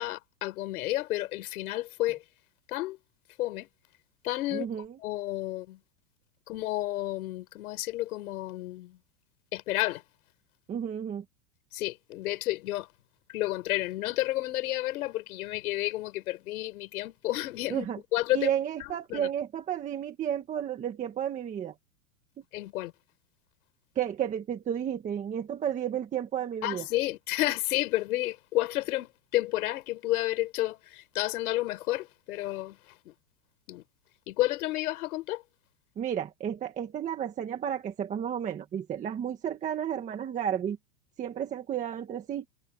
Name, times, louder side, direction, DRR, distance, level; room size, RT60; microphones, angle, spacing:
voice 1, 0.0-2.2 2.7-3.0 3.4-3.7 4.2-4.7 5.0-5.8 6.5-9.0 9.5-10.0 11.7-12.9 13.3-17.9 18.1-18.5 19.1-19.3 22.5-22.9 26.6-33.1 33.7-33.8 34.3-35.4, left 17 dB, 60° left, 6.3 m, -31 dB
voice 2, 4.5-4.8 10.7-11.2 17.7-18.0 18.3-21.8 24.0-26.9 36.0-40.8 41.2-42.5, right 9 dB, 15° right, 1.6 m, -32 dB
supercardioid pair, 170°, 48 cm